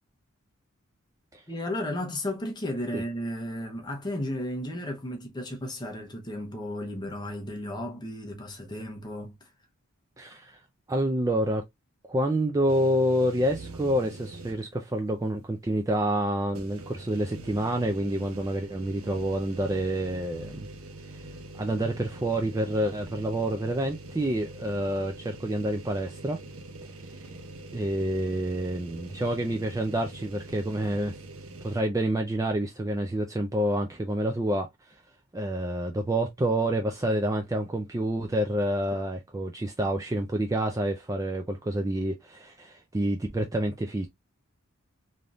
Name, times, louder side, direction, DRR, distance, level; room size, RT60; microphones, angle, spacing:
voice 1, 1.5-9.4, left 1 dB, 20° left, 0.7 m, -34 dB
voice 2, 10.2-10.6 10.9-11.6 12.1-20.7 21.5-26.4 27.2-27.3 27.7-31.1 31.6-34.7 35.3-44.1, right 1 dB, 15° right, 0.3 m, -28 dB
sound 1, 12.7-14.8 15.2-15.3 16.5-31.8, right 2 dB, 80° right, 0.7 m, -44 dB
3.4 x 2.7 x 2.3 m
head